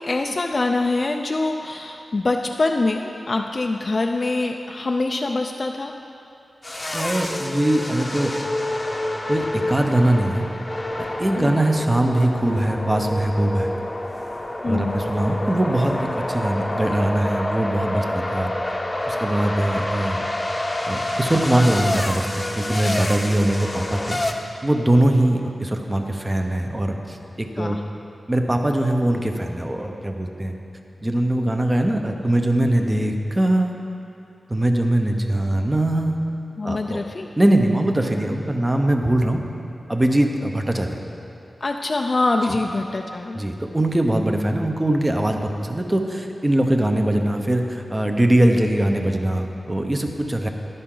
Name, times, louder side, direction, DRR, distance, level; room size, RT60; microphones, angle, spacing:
voice 1, 0.0-5.9 11.4-11.6 14.6-14.9 27.6-27.8 36.6-37.3 41.6-43.5, left 2 dB, 45° left, 3 dB, 0.4 m, -24 dB
sound 1, 6.6-24.3, left 1 dB, 25° left, 0.8 m, -28 dB
voice 2, 6.9-8.3 9.3-10.5 11.0-13.7 14.6-18.5 19.0-20.3 20.9-24.2 24.6-27.8 28.3-30.5 31.0-33.7 34.5-36.2 36.6-37.0 37.4-39.4 39.9-41.0 43.3-50.5, right 1 dB, 20° right, 4 dB, 0.8 m, -21 dB
11.5 x 11.0 x 3.9 m, 2.7 s
wide cardioid pair, 90°, 0 cm